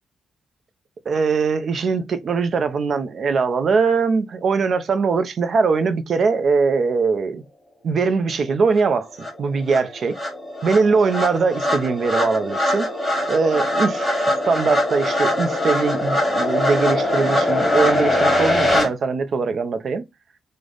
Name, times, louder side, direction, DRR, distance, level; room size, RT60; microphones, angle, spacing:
voice 1, 1.1-7.4 7.8-9.1 9.4-10.2 10.6-12.9 13.3-20.1, right 4 dB, 50° right, 0.4 m, -21 dB
sound 1, 8.8-8.9 9.2-18.9, left 1 dB, 10° left, 1.2 m, -22 dB
3.2 x 2.0 x 3.7 m
cardioid pair, 110°, 0 cm